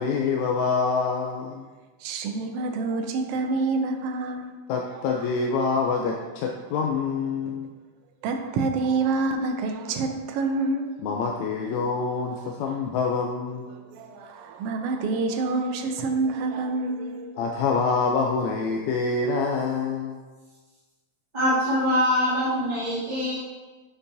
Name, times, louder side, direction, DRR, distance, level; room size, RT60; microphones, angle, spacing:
voice 1, 0.0-1.6 4.7-7.7 11.0-13.7 17.4-20.2, left 4 dB, 80° left, 1 dB, 1.8 m, -26 dB
voice 2, 2.0-4.5 4.9-5.1 8.2-10.9 12.3-12.8 13.7-17.6, right 3 dB, 80° right, 5 dB, 1.4 m, -28 dB
voice 3, 21.3-23.3, equal, 15° right, -14 dB, 1.9 m, -23 dB
6.9 x 6.7 x 2.7 m, 1.3 s
omnidirectional pair, 3.3 m